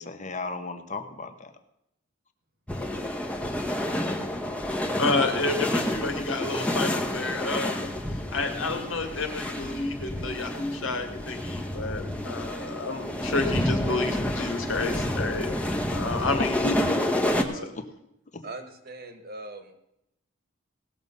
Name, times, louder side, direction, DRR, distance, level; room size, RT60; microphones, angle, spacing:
voice 1, 0.0-1.5 16.4-17.5, left 2 dB, 40° left, 8 dB, 1.2 m, -34 dB
sound 1, 2.7-17.4, left 1 dB, 5° left, 1.1 m, -29 dB
voice 2, 5.0-7.9 8.3-15.5 15.9-16.6, left 3 dB, 85° left, 5 dB, 2.1 m, -30 dB
voice 3, 18.4-19.8, right 2 dB, 50° right, 8 dB, 1.6 m, -41 dB
18.5 x 6.9 x 5.4 m, 0.82 s
head